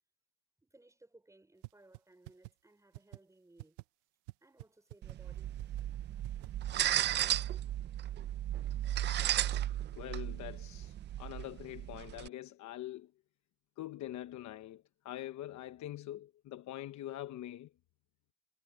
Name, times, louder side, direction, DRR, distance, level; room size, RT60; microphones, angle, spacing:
voice 1, 0.6-3.9 4.4-5.6, right 2 dB, 5° right, 5.3 m, -62 dB
sound 1, 1.6-1.7 1.9-2.0 2.3-2.5 2.9-3.2 3.6-3.8 4.3-4.4 4.6-4.7 4.9-5.2 5.6-5.8 6.2-6.5, right 24 dB, 85° right, 0.7 m, -46 dB
sound 2, 5.0-12.3, right 12 dB, 30° right, 0.3 m, -35 dB
voice 2, 9.9-13.1 13.8-17.7, left 13 dB, 45° left, 1.0 m, -44 dB
cardioid pair, 150°, 41 cm